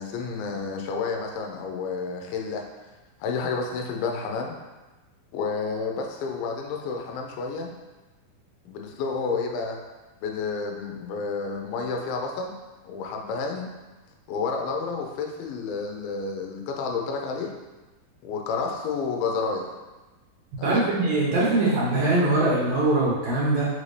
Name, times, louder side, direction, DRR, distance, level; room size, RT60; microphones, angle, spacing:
voice 1, 0.0-2.7 3.2-4.6 5.3-7.7 8.7-9.8 10.2-12.6 12.8-13.7 14.3-17.5 18.2-19.7 20.6-20.9, left 4 dB, 80° left, 2 dB, 2.2 m, -30 dB
voice 2, 20.6-23.7, right 2 dB, 85° right, -7 dB, 1.3 m, -22 dB
5.6 x 2.6 x 3.2 m, 1.2 s
omnidirectional pair, 4.3 m